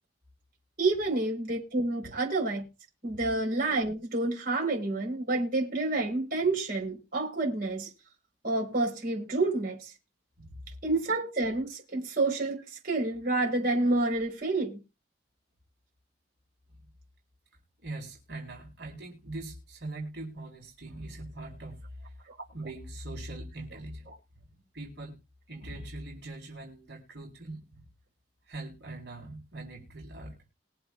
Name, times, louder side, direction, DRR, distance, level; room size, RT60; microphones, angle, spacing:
voice 1, 0.8-2.6 3.0-7.9 8.4-9.9 10.8-14.8, right 2 dB, 50° right, 4.5 m, -29 dB
voice 2, 17.8-24.2 24.7-25.2 25.5-27.9 28.5-30.4, right 2 dB, 70° right, 4.3 m, -42 dB
22.0 x 7.8 x 2.4 m
head